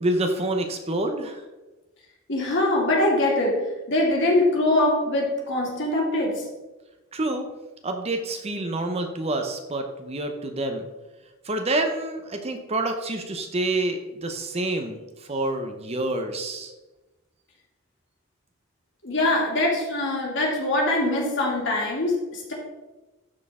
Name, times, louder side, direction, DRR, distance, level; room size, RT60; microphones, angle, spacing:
voice 1, 0.0-1.4 7.1-7.5 7.8-10.9 11.4-16.7, right 2 dB, 30° right, 5 dB, 0.7 m, -27 dB
voice 2, 2.3-6.4 19.0-22.5, left 1 dB, 55° left, -2 dB, 2.3 m, -23 dB
12.5 x 4.4 x 3.6 m, 1.1 s
head